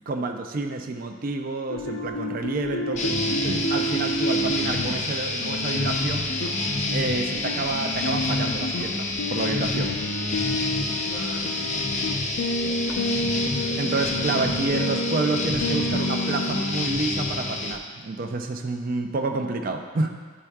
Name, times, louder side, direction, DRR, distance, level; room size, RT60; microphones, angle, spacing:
voice 1, 0.1-6.3 6.9-10.0 13.8-20.1, right 3 dB, 40° right, 4 dB, 0.4 m, -29 dB
sound 1, 1.7-16.8, left 1 dB, 85° left, 0.7 m, -30 dB
sound 2, 3.0-17.8, left 2 dB, 35° left, 0.5 m, -28 dB
voice 2, 11.0-15.1, left 2 dB, 55° left, -1 dB, 0.8 m, -43 dB
11.0 x 4.4 x 2.3 m, 1.5 s
head